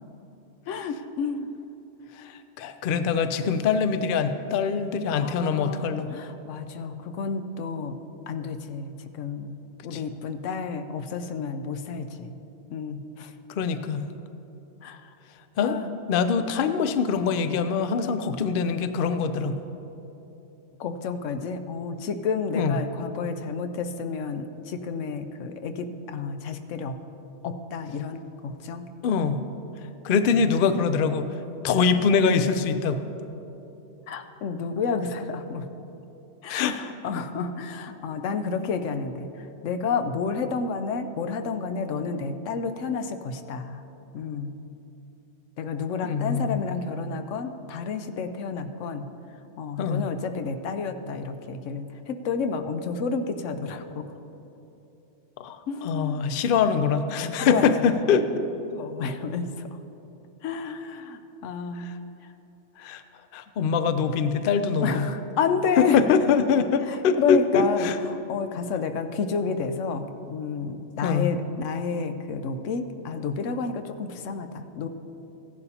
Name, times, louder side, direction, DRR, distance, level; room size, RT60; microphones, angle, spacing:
voice 1, 0.7-1.5 5.1-8.0 8.3-12.3 12.7-13.3 14.8-15.1 15.6-15.9 20.8-27.0 27.4-28.9 30.3-30.4 34.1-35.7 36.4-43.8 44.1-44.6 45.6-49.1 49.6-54.1 55.7-56.3 57.2-57.9 58.7-59.8 60.4-61.9 62.2-62.3 64.8-66.0 66.9-74.9, left 5 dB, 90° left, 8 dB, 1.0 m, -30 dB
voice 2, 2.6-6.1 9.9-10.0 13.6-14.1 15.6-15.8 16.1-19.6 22.5-22.8 29.0-29.4 30.0-31.3 31.6-33.0 36.5-36.9 46.0-46.8 49.8-50.1 55.4-58.5 61.8-61.9 62.8-63.0 63.3-65.1 65.8-68.0 71.0-71.3, left 6 dB, 60° left, 10 dB, 0.6 m, -23 dB
15.5 x 11.0 x 2.8 m, 3.0 s
omnidirectional pair, 1.2 m